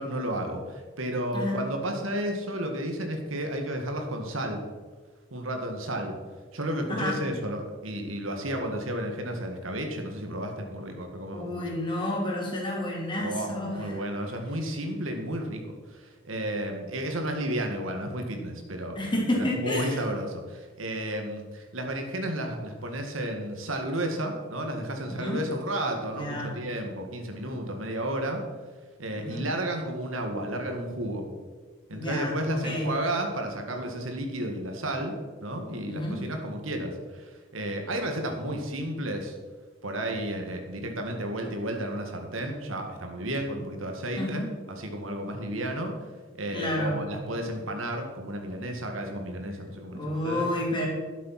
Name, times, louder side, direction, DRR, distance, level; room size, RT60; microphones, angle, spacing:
voice 1, 0.0-4.6 5.3-6.1 6.5-11.8 13.2-19.0 19.3-28.4 29.0-31.2 31.9-35.1 35.4-39.4 39.8-45.9 46.4-50.5, right 1 dB, 90° right, 3 dB, 2.0 m, -32 dB
voice 2, 6.9-7.2 11.3-14.0 18.9-20.0 25.1-25.4 26.1-26.5 29.1-29.5 31.9-32.9 35.9-36.2 44.2-44.5 46.5-47.0 49.9-50.9, left 1 dB, 25° left, -3 dB, 3.0 m, -30 dB
12.0 x 7.5 x 5.9 m, 1.4 s
head